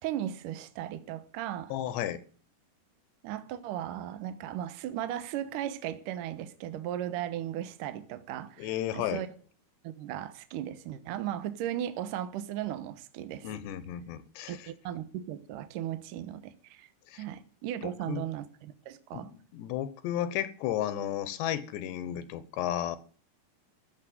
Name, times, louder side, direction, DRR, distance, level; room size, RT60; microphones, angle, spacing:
voice 1, 0.0-1.7 3.2-9.3 9.8-13.5 14.5-16.9 17.1-19.3, right 11 dB, 70° right, 2.2 m, -36 dB
voice 2, 1.7-2.2 8.6-9.2 13.4-14.6 17.1-17.2 17.8-18.3 19.1-19.3 19.5-23.0, left 11 dB, 85° left, 3.3 m, -33 dB
15.0 x 7.3 x 9.3 m
omnidirectional pair, 4.8 m